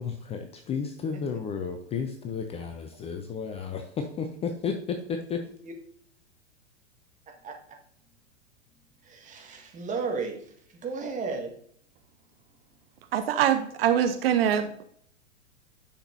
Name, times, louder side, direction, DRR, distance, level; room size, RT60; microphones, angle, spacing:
voice 1, 0.0-5.5, left 6 dB, 15° left, 6 dB, 0.5 m, -33 dB
voice 2, 9.1-10.4 10.8-11.5, right 4 dB, 20° right, 2 dB, 1.5 m, -33 dB
voice 3, 13.1-14.8, right 9 dB, 50° right, 8 dB, 0.7 m, -24 dB
10.0 x 5.9 x 2.6 m, 0.64 s
figure-of-eight pair, 100°, 38 cm